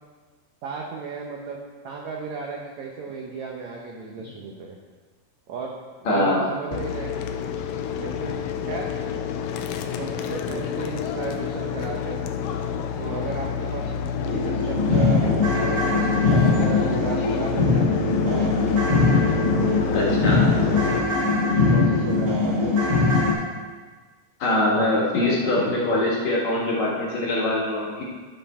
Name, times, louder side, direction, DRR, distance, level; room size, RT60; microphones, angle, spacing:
voice 1, 0.6-1.6 1.8-4.8 5.5-5.7 6.0-7.2 7.9-8.9 10.0-12.3 13.0-13.9 14.2-18.7 19.5-20.5 20.8-21.0 21.5-23.2 24.9-26.0, right 4 dB, 85° right, -1 dB, 1.6 m, -35 dB
voice 2, 6.1-6.5 19.9-20.4 24.4-28.0, left 1 dB, 55° left, -4 dB, 2.4 m, -23 dB
sound 1, 6.7-21.0, left 7 dB, 80° left, 2.1 m, -29 dB
sound 2, 13.8-13.9 14.2-23.3, left 3 dB, 40° right, 1.7 m, -21 dB
14.5 x 5.6 x 4.3 m, 1.4 s
omnidirectional pair, 4.5 m